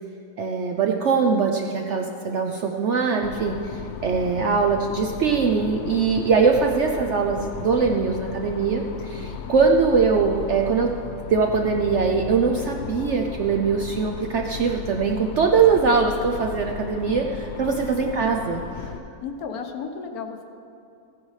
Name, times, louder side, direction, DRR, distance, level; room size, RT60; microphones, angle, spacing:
voice 1, 0.4-10.9 11.3-18.9, right 5 dB, 65° right, 2 dB, 0.7 m, -22 dB
sound 1, 3.2-19.0, left 8 dB, 90° left, 0.6 m, -35 dB
voice 2, 19.2-20.4, left 5 dB, 70° left, 6 dB, 1.2 m, -33 dB
15.0 x 9.4 x 3.2 m, 2.6 s
omnidirectional pair, 1.7 m